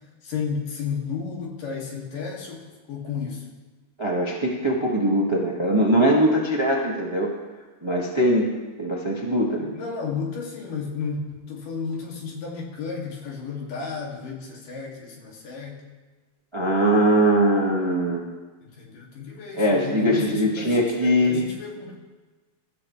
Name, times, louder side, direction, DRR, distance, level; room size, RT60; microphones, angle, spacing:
voice 1, 0.2-3.5 9.7-15.8 18.8-21.9, left 5 dB, 65° left, -2 dB, 4.0 m, -33 dB
voice 2, 4.0-7.3 7.8-8.5 8.8-9.7 16.5-18.2 19.6-21.4, right 1 dB, 15° right, -2 dB, 0.8 m, -21 dB
23.5 x 13.5 x 3.3 m, 1.3 s
omnidirectional pair, 4.2 m